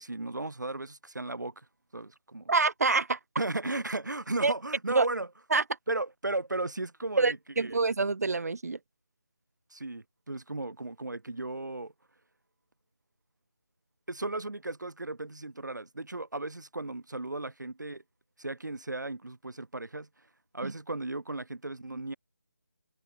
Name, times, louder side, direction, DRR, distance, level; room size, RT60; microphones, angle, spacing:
voice 1, 0.0-1.7 1.9-2.5 3.4-5.3 5.9-7.8 9.7-11.9 14.1-18.0 18.4-20.1 20.5-22.2, right 2 dB, 80° right, 7.7 m, -35 dB
voice 2, 2.5-3.2 4.4-4.5 4.9-5.1 5.5-5.6 7.2-8.8 20.6-20.7, right 3 dB, 60° right, 0.9 m, -26 dB
figure-of-eight pair, 170°, 10 cm